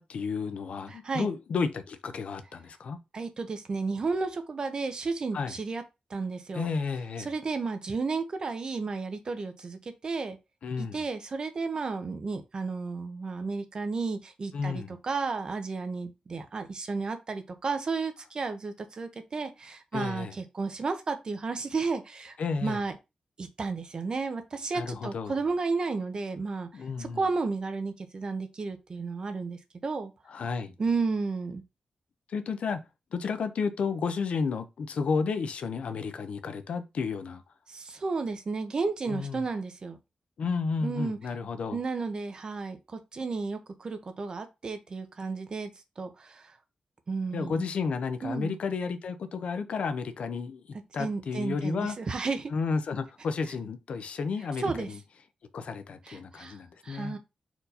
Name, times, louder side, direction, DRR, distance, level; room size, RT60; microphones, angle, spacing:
voice 1, 0.0-3.0 5.3-5.6 6.5-7.3 10.6-11.0 14.5-14.9 19.9-20.3 22.4-22.8 24.7-25.4 26.7-27.2 30.3-30.8 32.3-32.8 33.1-37.4 39.1-39.4 40.4-41.8 47.3-50.6 50.9-52.0 52.5-55.0 55.5-57.2, left 5 dB, 65° left, 0.6 m, -32 dB
voice 2, 0.9-1.3 3.1-5.8 6.1-6.7 7.2-10.4 10.8-22.4 22.6-23.0 23.4-30.1 30.8-31.6 37.7-40.0 40.8-41.2 41.7-45.7 46.0-46.6 47.1-47.7 48.2-48.5 51.0-52.5 54.6-54.9 56.0-57.2, right 4 dB, 40° right, 0.7 m, -33 dB
4.5 x 2.6 x 4.0 m
wide cardioid pair, 160°, 2 cm